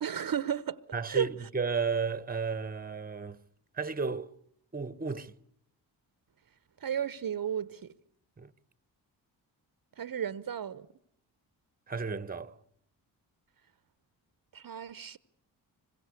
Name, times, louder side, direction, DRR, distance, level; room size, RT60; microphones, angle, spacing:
voice 1, 0.0-0.8 1.1-1.3 6.8-7.9 10.0-10.9 14.5-15.2, right 9 dB, 45° right, 1.0 m, -33 dB
voice 2, 0.9-3.4 3.7-4.3 4.7-5.3 8.4-8.5 11.9-12.6, right 5 dB, 20° right, 1.1 m, -33 dB
25.5 x 22.0 x 8.3 m
hypercardioid pair, 40°, 48 cm